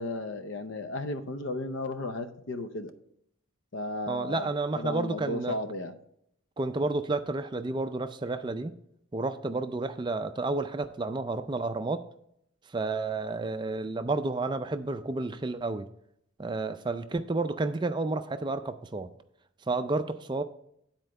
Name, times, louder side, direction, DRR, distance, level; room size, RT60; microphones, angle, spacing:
voice 1, 0.0-2.9 3.7-4.5 4.7-5.9, left 2 dB, 65° left, 9 dB, 0.7 m, -34 dB
voice 2, 4.1-5.6 6.6-8.7 9.1-12.0 12.7-15.9 16.4-19.1 19.7-20.4, right 3 dB, 20° right, 9 dB, 0.3 m, -31 dB
9.7 x 4.5 x 6.4 m, 0.74 s
head